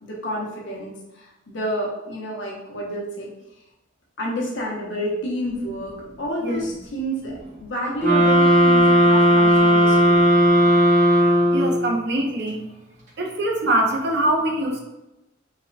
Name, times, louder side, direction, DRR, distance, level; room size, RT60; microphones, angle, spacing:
voice 1, 0.0-3.3 4.2-10.3, equal, 65° left, -3 dB, 0.9 m, -29 dB
sound 1, 8.0-11.9, equal, 40° right, 1.4 m, -16 dB
voice 2, 10.4-10.8 11.4-12.6 13.2-14.8, right 1 dB, 55° right, 1 dB, 0.7 m, -24 dB
5.0 x 3.5 x 2.2 m, 0.94 s
head